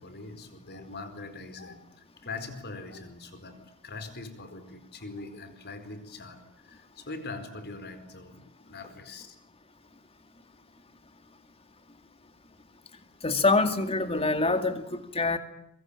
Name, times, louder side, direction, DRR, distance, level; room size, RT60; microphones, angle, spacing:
voice 1, 0.0-3.6 3.8-9.4, left 3 dB, 50° left, 10 dB, 4.6 m, -42 dB
voice 2, 13.2-15.4, left 3 dB, 25° left, 9 dB, 2.3 m, -25 dB
24.0 x 23.5 x 8.9 m, 0.80 s
head